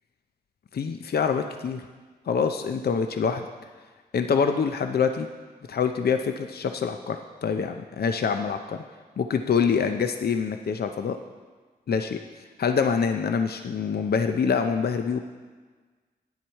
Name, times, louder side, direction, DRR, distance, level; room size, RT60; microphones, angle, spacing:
voice 1, 0.7-1.8 2.3-3.5 4.1-5.3 5.7-8.8 9.2-11.2 11.9-12.2 12.6-15.2, left 6 dB, 65° left, 7 dB, 0.5 m, -25 dB
9.5 x 7.3 x 4.5 m, 1.4 s
cardioid pair, 45°, 17 cm